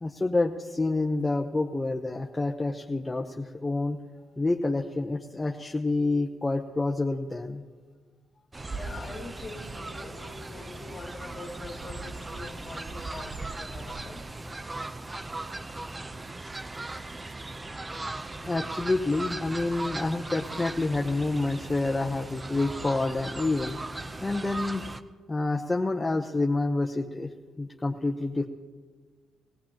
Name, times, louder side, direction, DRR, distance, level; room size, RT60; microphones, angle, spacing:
voice 1, 0.0-4.0 4.4-7.6 18.2-23.8 24.2-24.8 25.3-27.3 27.6-28.4, left 2 dB, 15° left, 1 dB, 0.9 m, -28 dB
Fowl, 8.5-25.0, right 2 dB, 20° right, 0.7 m, -38 dB
voice 2, 8.6-14.2, left 3 dB, 40° left, 2 dB, 2.3 m, -43 dB
21.0 x 16.5 x 3.0 m, 1.5 s
cardioid pair, 90°, 0 cm